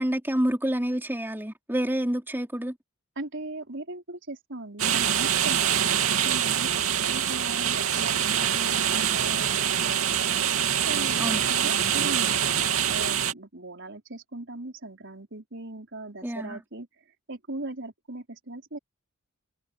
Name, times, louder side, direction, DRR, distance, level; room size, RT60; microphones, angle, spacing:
voice 1, 0.0-2.7 11.2-11.4 16.2-16.6, right 1 dB, 10° right, 3.4 m, -28 dB
voice 2, 3.2-10.4 10.9-16.9 17.3-18.8, right 2 dB, 60° right, 5.0 m, -38 dB
sound 1, 4.8-13.3, right 9 dB, 85° right, 2.6 m, -25 dB
head